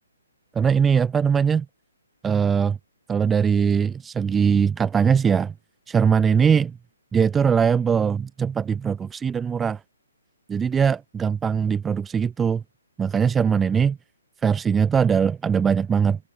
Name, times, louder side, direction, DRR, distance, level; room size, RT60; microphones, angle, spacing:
voice 1, 0.5-1.6 2.2-2.8 3.1-5.5 5.9-6.8 7.1-9.8 10.5-12.6 13.0-14.0 14.4-16.2, right 6 dB, 10° right, 1.5 m, -21 dB
figure-of-eight pair, 135°, 0 cm